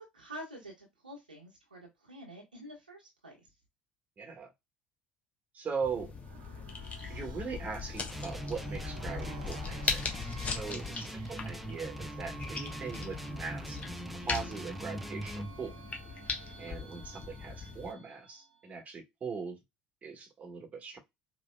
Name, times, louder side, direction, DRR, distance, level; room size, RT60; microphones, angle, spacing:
voice 1, 0.1-3.5, equal, 85° right, 1.4 m, -48 dB
voice 2, 4.2-4.5 5.5-6.1 7.1-10.0 10.4-13.8 14.1-15.8 16.6-19.6 20.0-21.0, right 5 dB, 30° right, 1.3 m, -40 dB
sound 1, 5.8-17.9, left 5 dB, 30° left, 1.0 m, -40 dB
sound 2, 6.1-18.6, right 7 dB, 70° right, 0.8 m, -52 dB
sound 3, 8.1-15.5, right 1 dB, ahead, 0.5 m, -42 dB
4.8 x 2.8 x 2.2 m
figure-of-eight pair, 65°, 5 cm